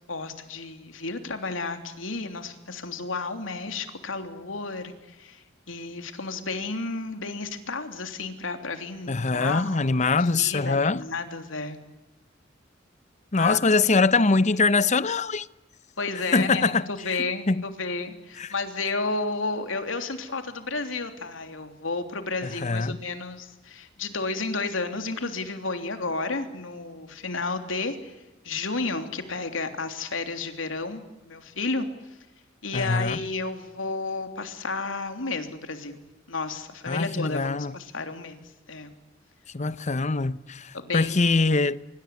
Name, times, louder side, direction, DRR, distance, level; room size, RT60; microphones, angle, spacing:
voice 1, 0.1-9.8 10.2-11.8 13.3-13.6 16.0-17.5 17.8-28.1 28.4-31.9 32.6-36.0 36.3-38.4 38.7-39.0 39.8-39.9 40.7-41.2, left 3 dB, 85° left, 3.2 m, -32 dB
voice 2, 9.1-11.0 13.3-15.5 16.3-16.9 17.5-17.6 18.4-18.5 22.4-23.0 32.7-33.2 36.9-37.7 39.5-41.8, left 3 dB, 40° left, 0.8 m, -23 dB
25.5 x 24.0 x 8.4 m
head